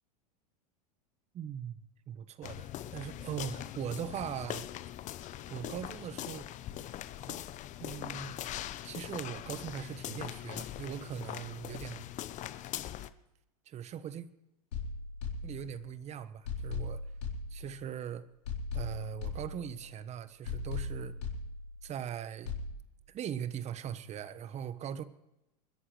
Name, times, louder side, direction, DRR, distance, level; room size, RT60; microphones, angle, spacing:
voice 1, 1.3-4.7 5.5-6.5 7.3-7.4 7.8-8.4 8.8-12.0 13.7-14.3 15.4-17.0 17.5-18.3 18.7-21.2 21.8-22.6 23.1-25.0, right 9 dB, 35° right, 1.2 m, -40 dB
sound 1, 2.4-13.1, left 13 dB, 40° left, 0.9 m, -41 dB
sound 2, 14.7-16.0 16.5-18.0 18.5-20.0 20.5-22.0 22.5-22.7, left 4 dB, 80° left, 3.7 m, -38 dB
29.0 x 11.0 x 3.3 m
hypercardioid pair, 100°, 20 cm